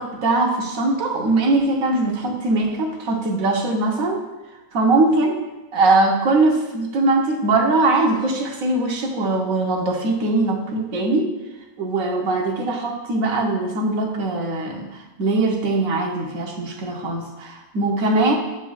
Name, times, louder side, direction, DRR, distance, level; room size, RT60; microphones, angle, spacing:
voice 1, 0.0-4.2 4.7-5.4 5.7-11.3 11.8-14.9 15.2-18.3, right 2 dB, 60° right, 1 dB, 1.3 m, -21 dB
8.8 x 6.9 x 2.3 m, 1.0 s
omnidirectional pair, 1.7 m